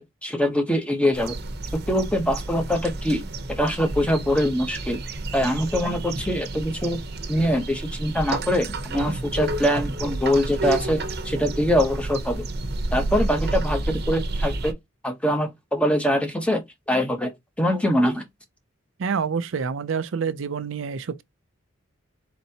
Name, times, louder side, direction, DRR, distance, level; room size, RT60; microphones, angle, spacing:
voice 1, 0.0-1.4 1.7-3.2 3.5-5.0 5.3-7.0 7.3-12.4 12.9-14.7 15.0-16.6 16.9-17.3 17.6-18.2, equal, 5° left, 0.9 m, -23 dB
sound 1, 1.1-14.7, right 2 dB, 55° right, 0.8 m, -30 dB
voice 2, 19.0-21.2, right 6 dB, 75° right, 0.4 m, -27 dB
4.3 x 4.0 x 2.8 m
head